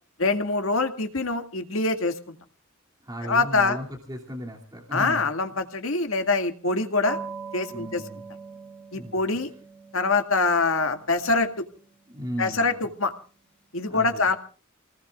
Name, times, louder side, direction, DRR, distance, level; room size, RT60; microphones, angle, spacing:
voice 1, 0.2-2.1 3.2-3.8 4.9-7.2 7.5-8.0 8.9-9.5 9.9-11.7 12.4-13.1 13.7-14.4, left 3 dB, 70° left, 6 dB, 2.1 m, -24 dB
voice 2, 3.0-5.3 7.7-8.2 8.9-9.4 12.1-12.9 13.9-14.3, equal, 20° right, 0 dB, 2.7 m, -36 dB
sound 1, 7.0-13.2, right 4 dB, 5° left, 3.0 m, -43 dB
29.0 x 19.5 x 2.4 m, 0.39 s
head